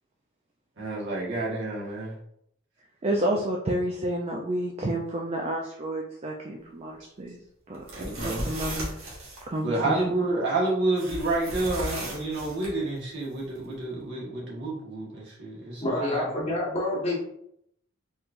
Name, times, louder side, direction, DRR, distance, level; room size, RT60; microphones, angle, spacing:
voice 1, 0.8-2.1 7.9-8.5 9.6-16.3, right 2 dB, 65° right, -5 dB, 1.5 m, -29 dB
voice 2, 3.0-7.4 7.7-7.8 8.2-8.9 9.5-10.1, right 1 dB, 30° right, 0 dB, 0.4 m, -30 dB
sound 1, 7.7-9.4 11.0-12.7, right 1 dB, 90° right, 1.4 m, -35 dB
voice 3, 15.8-17.3, left 2 dB, 30° left, -4 dB, 1.3 m, -28 dB
4.4 x 3.2 x 2.5 m, 0.73 s
head